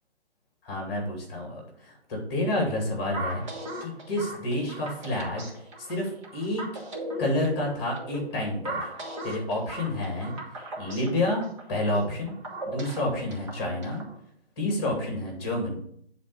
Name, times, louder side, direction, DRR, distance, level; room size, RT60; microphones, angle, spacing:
voice 1, 0.6-3.4 3.8-5.5 5.8-6.6 7.2-8.8 9.2-10.3 10.8-12.3 12.7-14.0 14.6-15.8, left 1 dB, 25° left, 0 dB, 2.4 m, -29 dB
sound 1, 3.1-14.2, right 1 dB, 30° right, 1.5 m, -38 dB
9.1 x 4.3 x 4.8 m, 0.69 s
figure-of-eight pair, 155°, 31 cm